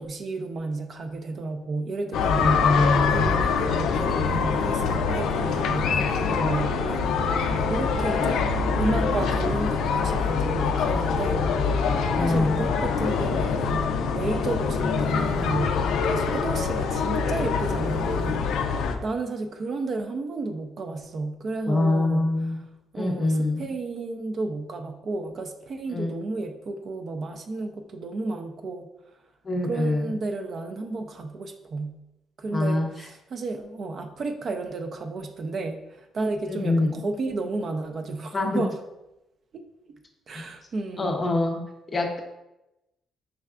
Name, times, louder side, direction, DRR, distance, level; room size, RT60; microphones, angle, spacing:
voice 1, 0.0-22.3 22.9-28.9 29.6-32.0 32.4-38.8 39.5-39.6 40.3-41.1, right 3 dB, 40° right, 5 dB, 0.4 m, -32 dB
sound 1, 2.1-19.0, left 5 dB, 80° left, 0.4 m, -24 dB
voice 2, 2.4-3.2 12.2-12.7 16.5-16.6 21.7-22.6 22.9-23.7 25.9-26.1 29.4-30.1 32.5-32.9 36.5-37.0 38.3-38.6 40.3-40.4 41.0-41.6 41.9-42.2, left 2 dB, 25° left, 2 dB, 0.5 m, -24 dB
5.5 x 3.3 x 2.4 m, 0.94 s
cardioid pair, 155°, 0 cm